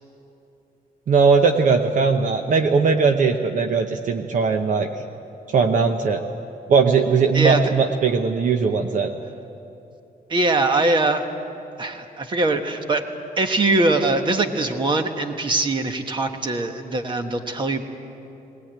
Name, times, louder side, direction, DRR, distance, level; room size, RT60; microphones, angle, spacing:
voice 1, 1.1-4.9 5.5-6.2 6.7-9.1, right 5 dB, 50° right, 5 dB, 0.9 m, -19 dB
voice 2, 7.3-7.7 10.3-11.3 11.8-13.0 13.4-17.8, right 2 dB, 30° right, 6 dB, 1.3 m, -22 dB
20.0 x 19.5 x 8.9 m, 2.8 s
wide cardioid pair, 160°, 16 cm